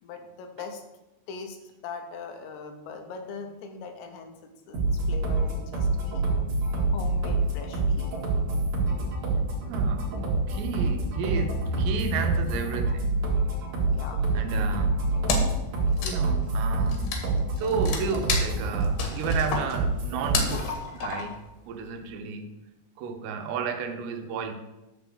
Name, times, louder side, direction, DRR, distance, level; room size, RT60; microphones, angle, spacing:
voice 1, 0.0-0.8 1.3-1.6 1.8-4.8 5.1-6.2 6.9-8.1 13.8-14.3, left 5 dB, 90° left, 5 dB, 3.2 m, -40 dB
sound 1, 4.7-20.7, right 3 dB, 50° right, 2.6 m, -26 dB
voice 2, 9.7-10.2 10.5-13.2 14.3-14.9 16.0-17.1 17.6-21.3 21.7-22.5 23.0-24.5, right 5 dB, 85° right, 6 dB, 2.9 m, -32 dB
Wood, 15.3-15.6 15.9-21.5, left 5 dB, 75° left, 2.9 m, -31 dB
10.0 x 3.5 x 6.8 m, 1.0 s
omnidirectional pair, 4.9 m